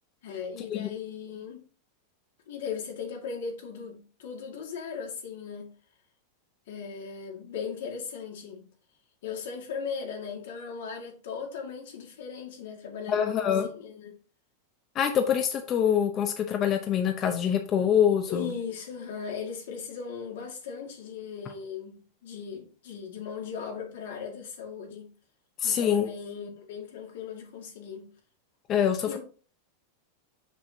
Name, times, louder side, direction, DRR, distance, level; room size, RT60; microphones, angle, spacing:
voice 1, 0.2-1.6 2.5-5.7 6.7-8.7 9.2-14.1 18.3-25.1 25.6-28.1 29.1-29.2, left 6 dB, 80° left, 2.2 m, -38 dB
voice 2, 13.1-13.7 14.9-18.5 25.6-26.1 28.7-29.2, left 8 dB, 30° left, 0.7 m, -25 dB
6.1 x 6.1 x 2.8 m
supercardioid pair, 140°, 0 cm